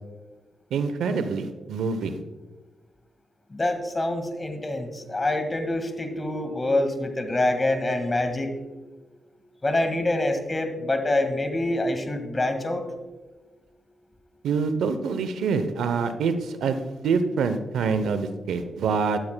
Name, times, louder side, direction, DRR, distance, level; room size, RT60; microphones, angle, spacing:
voice 1, 0.7-2.2 14.4-19.2, right 5 dB, 85° right, 10 dB, 0.7 m, -26 dB
voice 2, 3.5-8.7 9.6-12.8, left 1 dB, 30° left, 7 dB, 1.8 m, -26 dB
12.5 x 12.0 x 2.2 m, 1.2 s
supercardioid pair, 50°, 0 cm